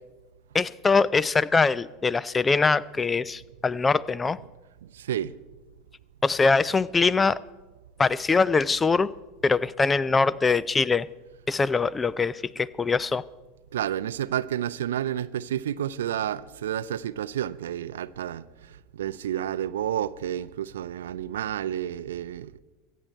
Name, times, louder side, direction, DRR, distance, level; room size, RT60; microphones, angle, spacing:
voice 1, 0.5-4.4 6.2-7.4 8.0-9.1 9.4-11.1 11.5-13.2, left 4 dB, 15° left, 0.4 m, -23 dB
voice 2, 4.8-5.4 13.7-22.6, right 11 dB, 70° right, 0.4 m, -30 dB
24.0 x 8.4 x 4.5 m
figure-of-eight pair, 80°, 0 cm